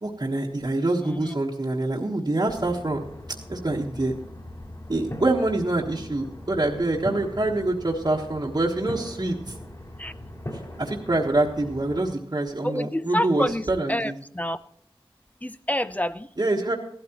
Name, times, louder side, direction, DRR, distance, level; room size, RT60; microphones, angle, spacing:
voice 1, 0.0-3.0 3.5-4.1 4.9-9.6 10.8-14.1 16.4-16.7, right 2 dB, 45° right, -2 dB, 1.3 m, -25 dB
voice 2, 1.0-1.4 10.0-10.1 12.6-14.6 15.4-16.3, left 1 dB, 15° left, 13 dB, 0.5 m, -28 dB
sound 1, 2.5-12.1, left 1 dB, 40° left, 4.1 m, -40 dB
15.0 x 12.5 x 3.0 m, 0.63 s
wide cardioid pair, 45°, 10 cm